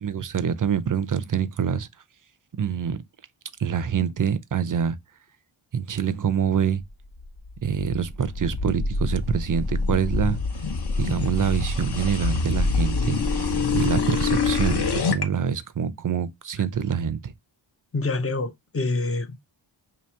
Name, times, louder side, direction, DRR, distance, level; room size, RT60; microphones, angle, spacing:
voice 1, 0.0-1.9 2.6-3.0 3.6-5.0 5.7-6.8 7.6-10.4 11.0-17.3, right 7 dB, 45° right, 0.5 m, -26 dB
sound 1, 7.2-15.2, left 4 dB, 55° left, 0.8 m, -25 dB
voice 2, 17.9-19.4, left 3 dB, 30° left, 0.6 m, -26 dB
2.9 x 2.8 x 4.3 m
wide cardioid pair, 85°, 47 cm